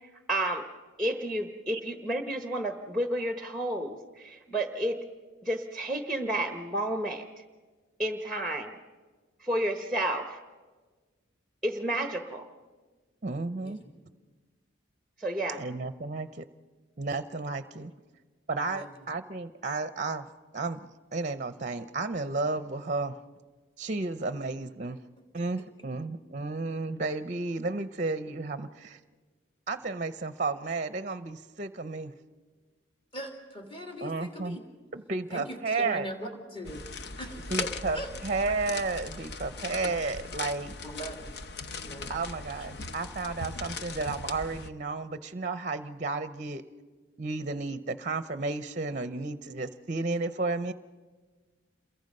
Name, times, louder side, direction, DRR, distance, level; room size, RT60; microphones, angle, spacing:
voice 1, 0.3-0.7 1.0-5.0 5.4-7.2 8.0-8.8 9.4-10.4 11.6-12.5 15.2-15.6, right 1 dB, ahead, 6 dB, 1.0 m, -31 dB
voice 2, 13.2-13.8 15.6-16.5 17.0-17.9 18.5-20.3 20.5-20.8 21.1-23.2 23.8-25.0 25.3-29.0 29.7-32.1 34.0-34.6 34.9-36.1 37.5-40.7 42.1-46.6 47.2-50.7, right 3 dB, 35° right, 12 dB, 0.6 m, -32 dB
voice 3, 18.6-18.9 33.1-34.6 35.3-36.9 37.2-38.1 40.8-41.3 41.7-42.2, equal, 25° left, 3 dB, 2.7 m, -40 dB
sound 1, 36.6-44.7, left 4 dB, 55° left, 0.8 m, -39 dB
28.0 x 22.0 x 5.4 m, 1.4 s
head